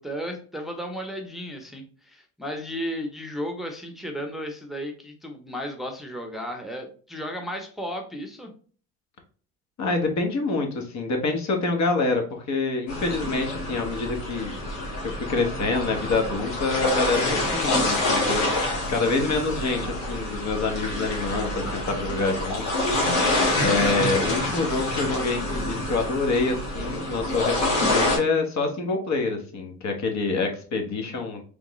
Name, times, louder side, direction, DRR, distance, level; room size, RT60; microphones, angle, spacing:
voice 1, 0.0-8.5, equal, ahead, 3 dB, 0.8 m, -34 dB
voice 2, 9.8-12.2 12.5-14.5 15.0-18.5 18.9-22.7 23.6-31.4, left 3 dB, 50° left, 3 dB, 1.2 m, -26 dB
sound 1, 12.9-28.2, left 1 dB, 85° left, 1.9 m, -27 dB
3.6 x 3.6 x 3.1 m, 0.42 s
supercardioid pair, 85°, 35 cm